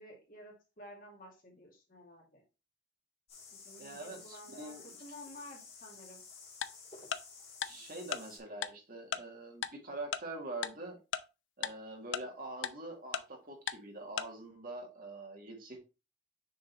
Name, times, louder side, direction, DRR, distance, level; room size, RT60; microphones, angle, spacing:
voice 1, 0.0-2.4 3.5-6.3, left 1 dB, 50° left, 0 dB, 2.2 m, -52 dB
sound 1, 3.3-8.4, left 5 dB, 30° left, 2.4 m, -52 dB
voice 2, 3.8-5.0 7.6-11.0 11.6-15.8, right 2 dB, 50° right, 2 dB, 1.7 m, -44 dB
Tick-tock, 6.6-6.7 7.1-7.2 7.6-7.7 8.1-8.2 8.6-8.7 9.1-9.2 9.6-9.7 10.1-10.2 10.6-10.7 11.1-11.2 11.6-11.7 12.1-12.2 12.6-12.7 13.1-13.2 13.7-13.8 14.2-14.3, left 8 dB, 80° left, 0.5 m, -34 dB
6.4 x 3.9 x 4.1 m, 0.29 s
head